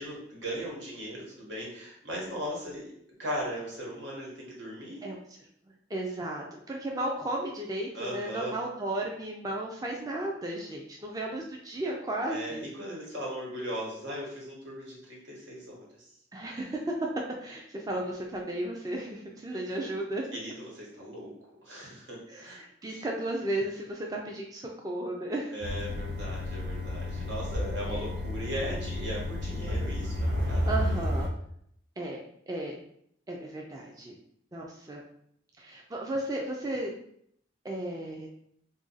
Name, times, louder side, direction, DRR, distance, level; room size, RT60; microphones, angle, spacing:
voice 1, 0.0-2.9 3.2-5.0 7.9-8.5 12.3-15.8 20.3-21.3 21.6-22.6 22.9-23.0 25.5-30.8, equal, 85° right, -4 dB, 1.3 m, -38 dB
voice 2, 5.9-12.6 16.3-17.1 17.4-20.2 22.3-25.6 27.9-28.0 30.6-31.3 32.0-32.2 32.5-32.8 33.3-34.2 34.5-35.0 35.6-36.9 37.6-38.3, right 1 dB, 20° right, 0 dB, 0.4 m, -34 dB
sound 1, 25.6-31.3, left 1 dB, 65° right, 0.6 m, -31 dB
2.8 x 2.5 x 3.9 m, 0.69 s
head